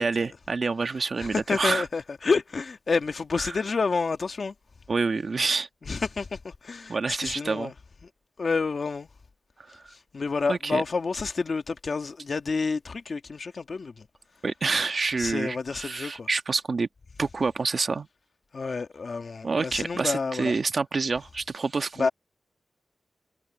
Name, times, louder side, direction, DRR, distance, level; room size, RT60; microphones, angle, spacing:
voice 1, 0.0-1.8 3.4-3.5 4.9-5.7 6.9-7.7 9.7-9.8 10.5-10.8 14.4-16.9 17.2-18.1 19.4-22.1, right 4 dB, 50° right, 1.4 m, -27 dB
voice 2, 1.2-4.5 5.8-7.7 8.4-9.1 9.7-14.1 15.2-16.3 18.5-20.6 22.0-22.1, left 4 dB, 55° left, 1.8 m, -29 dB
wide cardioid pair, 115°, 0 cm